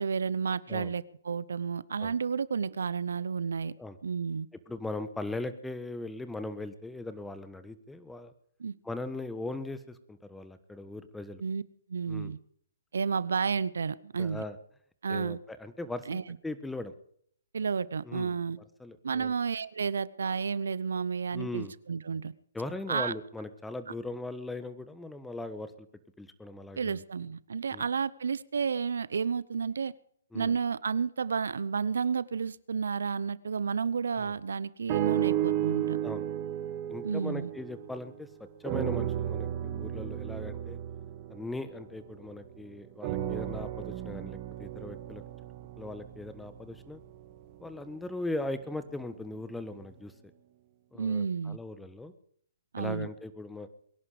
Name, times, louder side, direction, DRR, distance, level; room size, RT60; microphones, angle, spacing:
voice 1, 0.0-3.8 4.0-4.5 8.6-8.7 11.4-11.6 11.9-12.4 12.9-14.4 15.0-15.4 16.1-16.4 17.5-18.6 19.0-22.3 22.9-23.1 26.8-29.9 30.3-36.0 37.0-37.5 51.0-51.6 52.7-53.1, right 6 dB, 75° right, 19 dB, 0.8 m, -31 dB
voice 2, 4.7-8.3 8.8-11.4 12.1-12.3 14.2-14.6 15.1-16.9 18.0-18.4 18.8-19.3 21.3-21.7 22.5-25.9 26.2-27.0 27.7-27.9 30.3-30.5 34.2-34.3 36.0-36.2 36.9-38.3 38.6-40.8 41.3-45.2 45.8-47.0 47.6-50.1 50.9-52.1 52.8-53.7, left 2 dB, 5° left, 11 dB, 1.3 m, -39 dB
sound 1, 34.9-38.2 38.6-42.4 43.0-47.2 47.9-48.0, right 12 dB, 35° right, 1.8 m, -34 dB
22.5 x 11.0 x 5.0 m, 0.65 s
hypercardioid pair, 145°, 0 cm